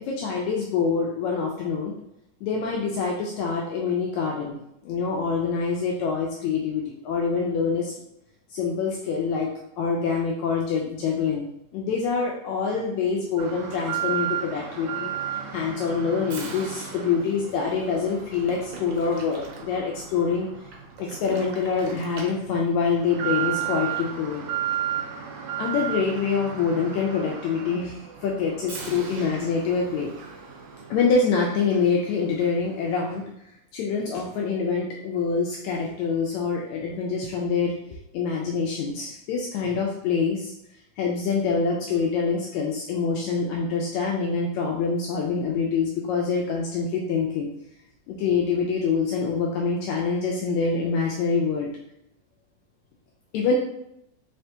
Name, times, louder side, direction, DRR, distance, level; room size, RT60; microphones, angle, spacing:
voice 1, 0.1-1.9 2.4-4.6 4.8-7.9 8.5-9.5 9.8-11.5 11.7-15.1 15.5-20.5 21.0-24.5 25.6-30.1 30.9-33.2 33.7-37.7 38.1-40.5 41.0-47.5 48.1-51.7 53.3-53.6, left 5 dB, 85° left, -1 dB, 1.6 m, -25 dB
Alarm, 13.4-32.0 32.4-32.5 33.1-33.2, right 9 dB, 70° right, 1.8 m, -34 dB
4.9 x 3.3 x 2.8 m, 0.78 s
omnidirectional pair, 3.8 m